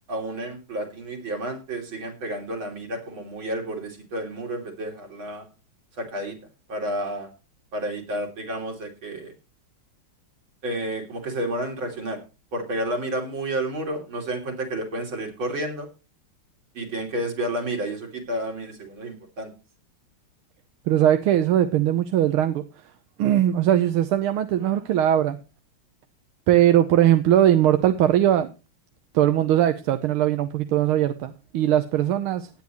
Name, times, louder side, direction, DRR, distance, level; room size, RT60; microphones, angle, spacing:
voice 1, 0.1-5.5 6.0-6.4 6.7-7.3 7.7-9.3 10.6-12.2 12.5-15.9 16.8-19.5, right 1 dB, 65° right, 2 dB, 4.0 m, -30 dB
voice 2, 20.9-22.6 23.2-25.4 26.5-28.5 29.1-32.5, right 11 dB, 85° right, 9 dB, 1.7 m, -20 dB
17.5 x 9.5 x 3.1 m, 0.31 s
omnidirectional pair, 2.3 m